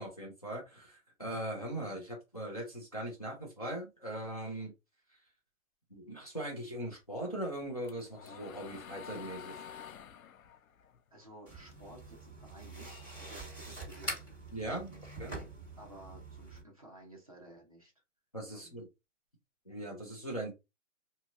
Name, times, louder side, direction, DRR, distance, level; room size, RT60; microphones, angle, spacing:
voice 1, 0.0-4.7 5.9-9.6 14.5-14.9 15.2-15.4 18.3-18.9 19.7-20.5, right 1 dB, 30° left, 0.5 m, -40 dB
sound 1, 7.4-12.0 12.3-13.9, left 8 dB, 90° left, 0.6 m, -50 dB
voice 2, 11.1-14.1 14.8-15.0 15.8-17.9 18.5-18.8, right 1 dB, 25° right, 0.6 m, -54 dB
sound 2, 11.5-16.6, right 2 dB, 10° left, 1.9 m, -45 dB
2.8 x 2.7 x 2.4 m
hypercardioid pair, 175°, 40 cm